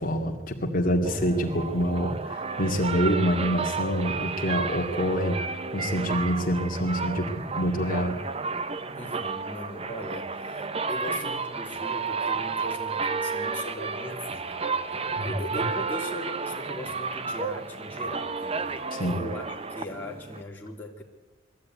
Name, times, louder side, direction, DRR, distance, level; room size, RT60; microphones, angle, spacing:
voice 1, 0.0-5.4 5.7-8.2 15.2-15.7 18.9-19.3, equal, 45° left, 0 dB, 2.4 m, -26 dB
sound 1, 1.1-20.4, right 4 dB, 30° right, 0.8 m, -32 dB
voice 2, 9.0-21.0, left 1 dB, 10° left, -3 dB, 3.2 m, -39 dB
22.5 x 15.0 x 9.6 m, 1.2 s
head